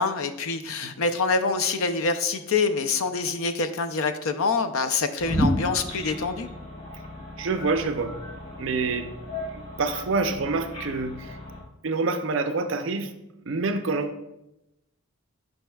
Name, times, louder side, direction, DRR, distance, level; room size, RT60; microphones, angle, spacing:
voice 1, 0.0-6.5, left 4 dB, 75° left, 9 dB, 0.5 m, -26 dB
sound 1, 5.2-11.6, left 1 dB, 30° left, 1.1 m, -32 dB
voice 2, 7.4-8.1 8.6-9.1 9.5-11.4 11.8-13.1 13.5-14.2, right 3 dB, 60° right, 9 dB, 0.5 m, -27 dB
9.2 x 5.3 x 2.3 m, 0.91 s
head